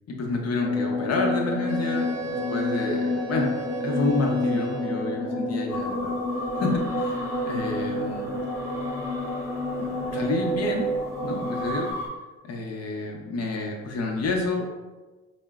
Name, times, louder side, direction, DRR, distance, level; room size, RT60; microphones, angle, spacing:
voice 1, 0.1-3.5 3.8-6.1 6.6-8.3 9.8-10.9 11.2-11.9 12.4-14.7, left 2 dB, 55° left, 0 dB, 0.8 m, -29 dB
sound 1, 0.6-11.9, left 1 dB, 10° left, 0.8 m, -29 dB
Wind instrument woodwind instrument, 1.7-5.2, right 3 dB, 60° right, 0.6 m, -37 dB
sound 2, 5.7-12.1, equal, 10° right, 1.0 m, -38 dB
4.2 x 2.1 x 2.3 m, 1.2 s
cardioid pair, 90°, 30 cm